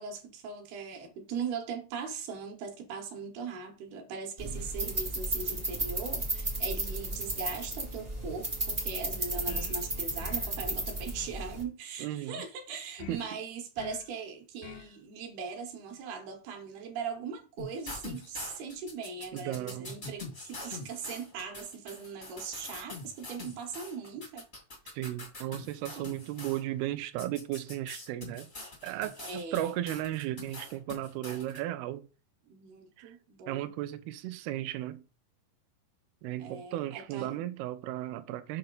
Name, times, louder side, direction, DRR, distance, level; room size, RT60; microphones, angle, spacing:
voice 1, 0.0-24.5 26.0-26.1 29.2-29.7 32.5-33.7 36.4-37.4, right 5 dB, 70° right, 2.9 m, -40 dB
sound 1, 4.4-11.6, right 2 dB, 40° right, 0.8 m, -34 dB
sound 2, 9.5-9.8 10.2-10.6 13.0-13.3 13.8-14.1 14.6-14.9, left 11 dB, 85° left, 2.8 m, -45 dB
voice 2, 12.0-12.4 13.1-13.3 19.3-19.9 24.9-28.5 28.8-32.1 33.0-33.2 33.5-35.0 36.2-38.6, right 14 dB, 85° right, 2.2 m, -35 dB
sound 3, 17.6-26.6 27.2-31.6, left 3 dB, 65° left, 0.4 m, -44 dB
6.6 x 5.7 x 3.9 m
omnidirectional pair, 5.0 m